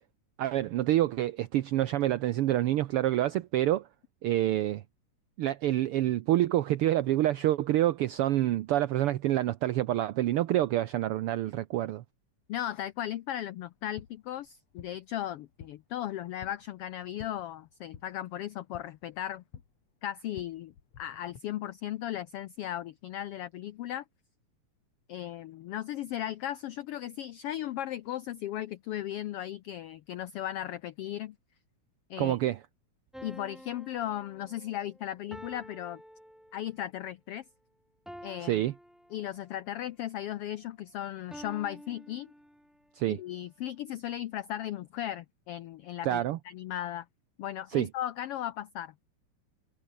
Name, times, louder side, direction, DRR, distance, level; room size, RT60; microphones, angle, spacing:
voice 1, 0.4-3.9 4.2-4.8 5.4-12.0 32.2-32.6 38.4-38.7 43.0-43.2 46.0-46.4 47.7-47.9, right 13 dB, 75° right, 1.3 m, -27 dB
voice 2, 12.5-19.4 20.0-24.0 25.1-31.3 32.1-32.4 33.2-36.0 36.5-37.4 38.2-38.6 39.1-42.3 43.1-47.1 47.4-48.9, left 12 dB, 85° left, 1.3 m, -36 dB
sound 1, 13.7-21.4, left 7 dB, 60° left, 3.3 m, -53 dB
sound 2, 33.1-36.9 38.1-39.6 41.3-42.9, equal, ahead, 0.5 m, -49 dB
omnidirectional pair, 3.4 m